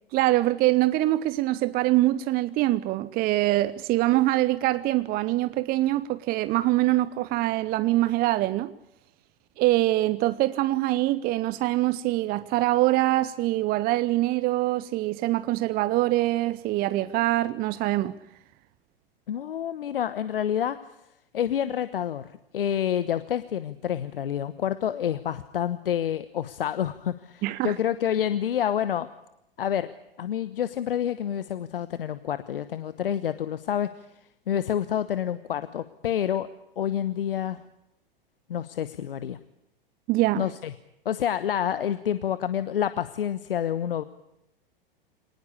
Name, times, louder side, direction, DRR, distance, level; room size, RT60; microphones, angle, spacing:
voice 1, 0.1-8.7 9.6-18.2 27.4-27.7 40.1-40.5, right 17 dB, 30° right, 0.8 m, -24 dB
voice 2, 19.3-20.8 21.3-29.1 29.6-29.9 30.2-34.0 34.5-36.5 36.8-37.6 38.5-39.4 40.4-40.7 41.0-44.0, left 9 dB, 70° left, 1.1 m, -28 dB
25.0 x 19.0 x 8.4 m
figure-of-eight pair, 100°, 29 cm